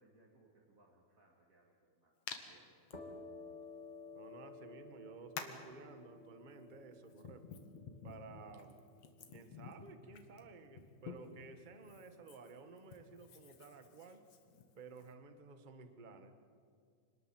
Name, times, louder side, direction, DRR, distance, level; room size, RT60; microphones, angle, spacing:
voice 1, 0.0-2.1 2.4-2.8, right 2 dB, 25° right, -3 dB, 2.5 m, -68 dB
Hands, 2.3-2.4 2.9-3.0 4.2-4.3 5.4-5.7 6.6-11.4 11.8-15.1, left 7 dB, 60° left, 2.7 m, -51 dB
sound 1, 2.9-10.4, left 3 dB, 15° left, 2.1 m, -55 dB
voice 2, 4.1-7.5 8.0-8.8 9.3-14.2 14.8-16.3, right 4 dB, 55° right, 8 dB, 0.5 m, -54 dB
26.0 x 20.0 x 7.5 m, 2.3 s
omnidirectional pair, 3.7 m